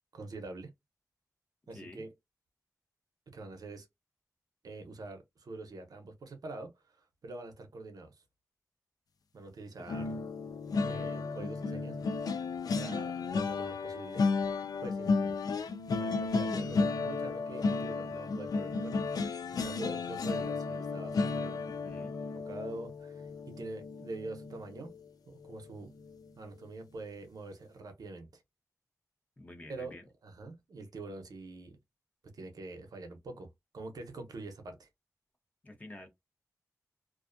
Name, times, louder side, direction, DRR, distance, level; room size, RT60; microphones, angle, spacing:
voice 1, 0.1-0.7 1.7-2.1 3.3-3.9 4.6-8.2 9.3-10.1 10.8-12.0 12.7-14.3 14.8-15.4 15.9-19.1 19.5-21.6 22.5-24.9 25.3-25.9 26.4-28.4 29.7-29.9 30.2-31.8 32.3-33.5 33.7-34.9, right 2 dB, 80° right, 0.7 m, -45 dB
voice 2, 1.7-2.0 21.7-22.2 29.4-30.1 35.6-36.1, left 1 dB, 25° left, 0.9 m, -49 dB
sound 1, 9.9-25.0 25.4-25.7 26.0-26.2, left 4 dB, 80° left, 0.4 m, -33 dB
2.4 x 2.2 x 2.5 m
wide cardioid pair, 95°, 6 cm